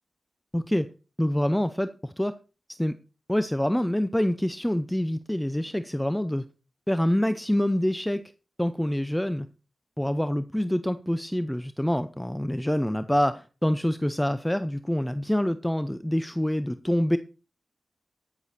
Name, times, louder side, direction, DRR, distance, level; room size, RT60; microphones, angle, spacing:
voice 1, 0.5-0.9 1.2-2.3 2.8-3.0 3.3-6.4 6.9-8.2 8.6-9.5 10.0-17.2, equal, 10° left, 12 dB, 0.7 m, -26 dB
13.5 x 6.9 x 4.3 m, 0.33 s
cardioid pair, 50°, 0 cm